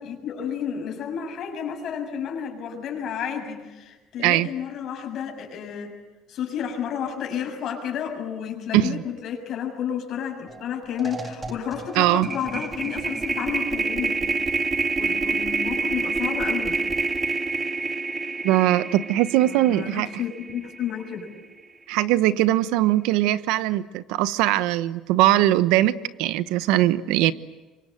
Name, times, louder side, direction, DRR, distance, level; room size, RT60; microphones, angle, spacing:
voice 1, 0.0-5.9 6.3-14.2 14.9-16.8 19.4-21.3, left 8 dB, 50° left, 3 dB, 6.8 m, -31 dB
sound 1, 10.5-10.7 11.0-21.2, right 4 dB, 20° right, 1.7 m, -28 dB
voice 2, 11.9-12.3 18.4-20.1 21.9-25.9 26.2-27.3, right 14 dB, 85° right, 14 dB, 1.0 m, -20 dB
27.0 x 24.5 x 7.9 m, 1.2 s
cardioid pair, 130°, 0 cm